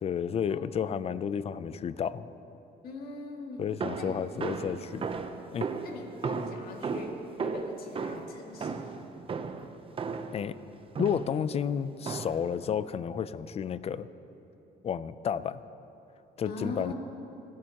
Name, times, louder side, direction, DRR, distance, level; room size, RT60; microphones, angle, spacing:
voice 1, 0.0-2.3 3.6-5.1 5.5-5.7 10.3-10.6 11.0-14.1 14.8-15.6 16.4-16.9, left 8 dB, 35° left, 15 dB, 0.5 m, -31 dB
voice 2, 2.8-3.6 4.0-4.1 5.8-9.0 16.4-16.9, left 2 dB, 65° left, 0 dB, 2.3 m, -41 dB
sound 1, 3.8-10.5 11.0-11.4 12.1-12.5, right 5 dB, 30° right, 0.7 m, -35 dB
29.5 x 12.5 x 3.0 m, 3.0 s
cardioid pair, 110°, 17 cm